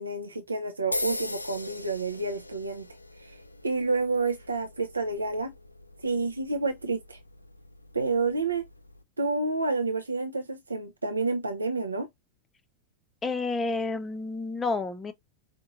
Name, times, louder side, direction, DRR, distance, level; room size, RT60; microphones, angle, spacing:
voice 1, 0.0-2.9 3.2-5.5 6.0-7.2 7.9-8.7 9.2-12.1, right 3 dB, 80° right, 0.5 m, -29 dB
sound 1, 0.9-9.0, left 2 dB, 85° left, 0.4 m, -40 dB
voice 2, 13.2-15.1, left 3 dB, 15° left, 0.6 m, -30 dB
5.0 x 2.8 x 2.5 m
figure-of-eight pair, 90°, 0 cm